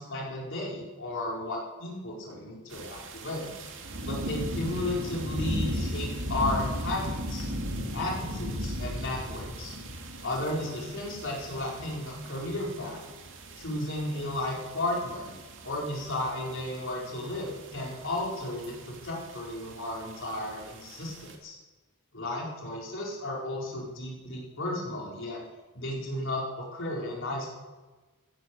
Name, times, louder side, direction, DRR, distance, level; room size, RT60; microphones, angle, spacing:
voice 1, 0.0-3.5 4.0-7.5 7.9-9.7 10.2-13.0 13.6-15.3 15.6-21.6 22.1-25.4 25.7-27.5, left 1 dB, 60° left, -2 dB, 4.9 m, -34 dB
sound 1, 2.7-21.4, equal, 60° right, 2.4 m, -37 dB
15.5 x 10.0 x 8.2 m, 1.2 s
head